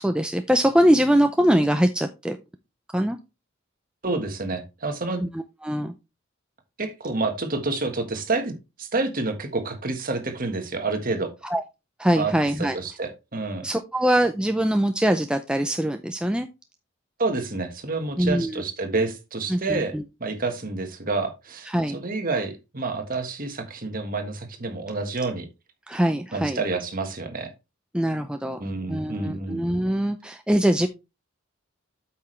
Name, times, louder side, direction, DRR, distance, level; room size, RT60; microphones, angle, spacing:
voice 1, 0.0-2.4 2.9-3.2 5.2-5.9 11.4-11.6 12.0-12.8 13.6-16.5 18.2-18.6 19.5-20.0 21.7-22.0 25.9-26.6 27.9-28.6 28.9-30.9, equal, 5° right, 6 dB, 0.4 m, -22 dB
voice 2, 4.0-5.2 6.8-8.5 8.8-11.3 12.2-12.3 12.7-13.7 17.2-19.9 20.2-25.5 26.3-27.5 28.6-29.6, right 3 dB, 40° right, 6 dB, 1.5 m, -28 dB
8.5 x 5.8 x 3.2 m, 0.26 s
head